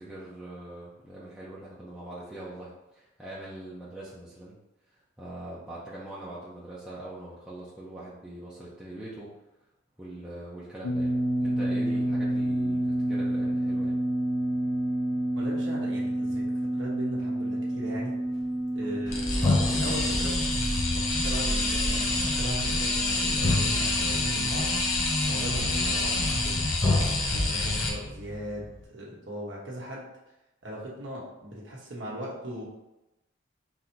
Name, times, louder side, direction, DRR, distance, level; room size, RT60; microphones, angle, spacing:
voice 1, 0.0-4.6 5.2-9.3 10.0-11.1 11.4-13.9, right 1 dB, 5° right, -9 dB, 0.7 m, -42 dB
sound 1, 10.8-26.7, right 1 dB, 70° left, 0.5 m, -30 dB
voice 2, 15.3-18.2 18.7-20.5 20.9-26.7 27.3-30.1 30.6-32.6, equal, 65° right, -5 dB, 1.1 m, -38 dB
sound 2, 18.8-18.9 19.4-26.5 26.8-28.8, left 2 dB, 20° left, 1.1 m, -31 dB
sound 3, 19.1-27.9, left 2 dB, 90° left, 1.0 m, -27 dB
4.0 x 2.8 x 4.4 m, 0.95 s
head